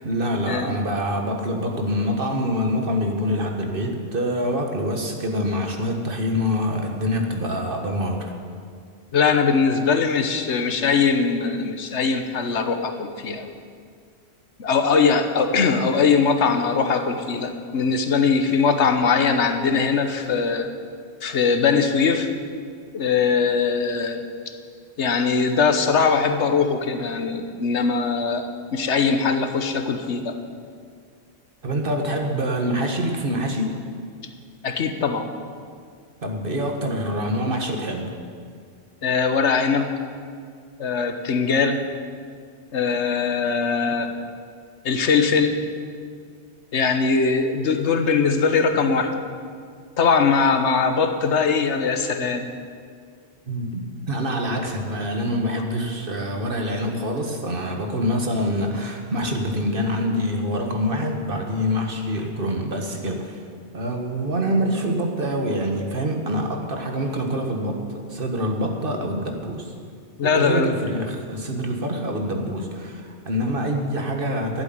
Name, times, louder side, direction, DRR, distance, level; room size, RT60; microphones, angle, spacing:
voice 1, 0.0-8.3 31.6-33.8 36.2-38.2 53.5-53.8 54.1-63.4 63.7-69.7 70.2-74.6, equal, 50° right, 3 dB, 1.6 m, -25 dB
voice 2, 9.1-13.5 14.6-20.7 21.2-22.3 22.9-24.5 25.0-30.4 34.6-35.3 39.0-39.9 40.8-41.8 42.7-44.1 44.8-45.6 46.7-49.1 50.0-52.5 70.2-70.7, left 5 dB, 80° left, 7 dB, 1.3 m, -21 dB
11.5 x 8.0 x 9.4 m, 2.1 s
omnidirectional pair, 1.2 m